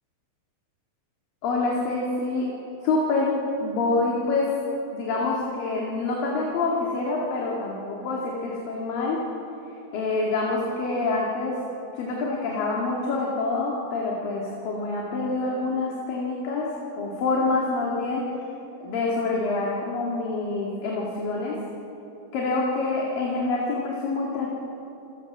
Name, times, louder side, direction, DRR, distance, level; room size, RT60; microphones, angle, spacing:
voice 1, 1.4-2.5 2.8-3.3 3.6-4.5 4.9-9.2 9.9-11.6 12.0-16.7 17.0-18.2 18.8-21.6 22.3-24.5, left 3 dB, 55° left, -3 dB, 3.5 m, -26 dB
27.5 x 17.5 x 7.4 m, 2.9 s
omnidirectional pair, 5.6 m